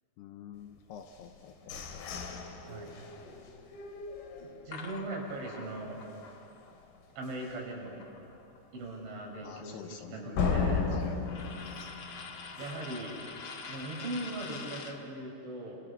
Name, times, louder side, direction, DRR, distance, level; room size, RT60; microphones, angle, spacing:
voice 1, 0.2-2.1 9.4-11.2 11.8-11.9, left 8 dB, 75° left, 6 dB, 2.7 m, -48 dB
sound 1, 1.1-5.0 5.4-5.5 5.9-6.3 6.7-6.8 7.3-7.4 10.4-13.0, left 5 dB, 60° left, 3.9 m, -35 dB
voice 2, 4.4-6.0 7.2-8.1 8.7-9.8 10.1-10.8 12.5-13.2 13.7-15.8, right 2 dB, 70° right, -1 dB, 7.8 m, -39 dB
sound 2, 4.7-8.8 9.1-15.0, left 5 dB, 90° left, 1.1 m, -47 dB
29.0 x 27.0 x 7.0 m, 2.7 s
omnidirectional pair, 5.5 m